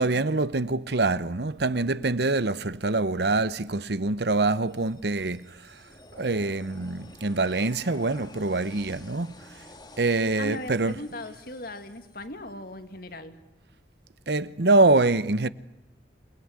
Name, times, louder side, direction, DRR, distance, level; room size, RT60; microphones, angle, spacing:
voice 1, 0.0-5.8 6.1-9.6 10.0-10.9 14.3-15.5, right 2 dB, 65° right, 0.9 m, -25 dB
sound 1, 4.3-12.3, left 2 dB, 25° left, 2.2 m, -51 dB
voice 2, 10.4-13.3, left 1 dB, 55° left, 2.4 m, -38 dB
28.0 x 20.5 x 9.7 m
head